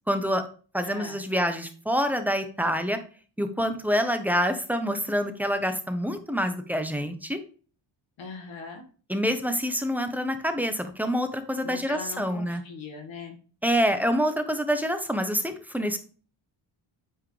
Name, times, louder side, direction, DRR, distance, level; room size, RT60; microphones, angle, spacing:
voice 1, 0.1-0.4 0.7-3.0 3.4-7.4 9.1-12.6 13.6-16.0, equal, 5° right, 8 dB, 1.1 m, -26 dB
voice 2, 0.8-1.3 8.2-8.8 11.6-13.4, left 4 dB, 80° left, 2 dB, 2.1 m, -40 dB
8.8 x 4.9 x 3.3 m, 0.39 s
cardioid pair, 100°, 46 cm